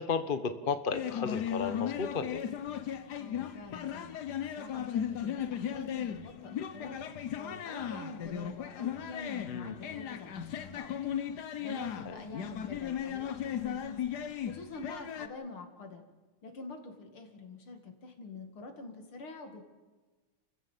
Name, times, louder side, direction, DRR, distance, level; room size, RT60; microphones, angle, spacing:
voice 1, 0.0-2.4 9.5-9.7, left 5 dB, 35° left, 9 dB, 1.0 m, -33 dB
sound 1, 0.9-15.3, left 9 dB, 55° left, 1.3 m, -36 dB
voice 2, 3.2-4.2 4.6-7.0 7.3-10.9 11.6-14.0 14.5-16.0 16.4-19.6, left 3 dB, 75° left, 5 dB, 3.2 m, -46 dB
29.0 x 15.5 x 7.3 m, 1.3 s
omnidirectional pair, 2.4 m